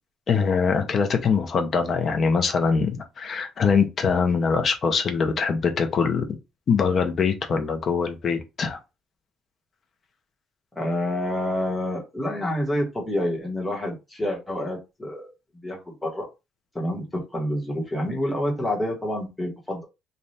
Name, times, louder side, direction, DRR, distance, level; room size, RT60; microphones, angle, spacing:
voice 1, 0.3-6.3 6.7-8.8, left 5 dB, 35° left, 0.7 m, -23 dB
voice 2, 10.7-15.3 15.6-16.2 16.7-19.8, left 1 dB, 5° left, 1.3 m, -28 dB
3.3 x 2.6 x 4.1 m
cardioid pair, 180°, 0 cm